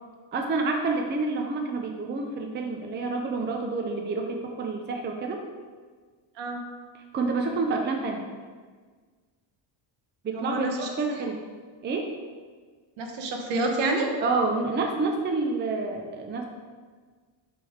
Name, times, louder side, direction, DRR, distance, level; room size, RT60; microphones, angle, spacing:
voice 1, 0.3-5.4 7.1-8.3 10.2-11.4 11.8-12.1 14.2-16.4, right 3 dB, 25° right, 2 dB, 0.5 m, -28 dB
voice 2, 10.3-10.9 11.2-11.3 13.0-14.1, right 2 dB, 65° right, 2 dB, 1.1 m, -28 dB
6.7 x 3.5 x 5.0 m, 1.5 s
cardioid pair, 130°, 46 cm